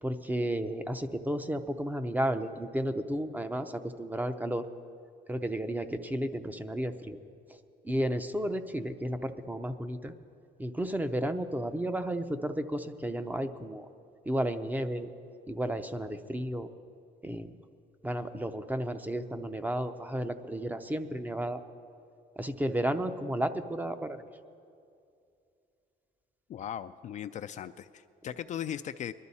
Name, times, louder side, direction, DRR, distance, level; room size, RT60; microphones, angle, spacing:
voice 1, 0.0-4.7 5.3-7.2 7.5-7.6 7.8-10.1 10.6-13.9 14.3-15.1 15.5-16.7 17.2-17.5 18.0-21.6 22.4-24.2, right 1 dB, 10° right, 9 dB, 0.6 m, -33 dB
voice 2, 26.5-29.1, left 9 dB, 45° left, 10 dB, 0.4 m, -38 dB
20.5 x 12.0 x 4.2 m, 2.5 s
cardioid pair, 110°, 17 cm